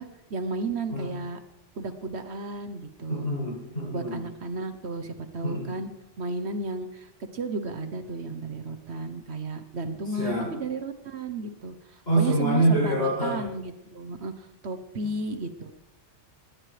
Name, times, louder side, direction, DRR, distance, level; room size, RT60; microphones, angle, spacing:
voice 1, 0.0-1.4 1.8-3.3 3.9-5.9 6.2-15.8, right 3 dB, 60° right, 9 dB, 1.3 m, -33 dB
voice 2, 3.1-4.3 5.4-5.7 10.1-10.6 12.1-13.5, right 1 dB, 60° left, -2 dB, 7.9 m, -26 dB
20.0 x 17.0 x 3.3 m, 0.96 s
omnidirectional pair, 1.3 m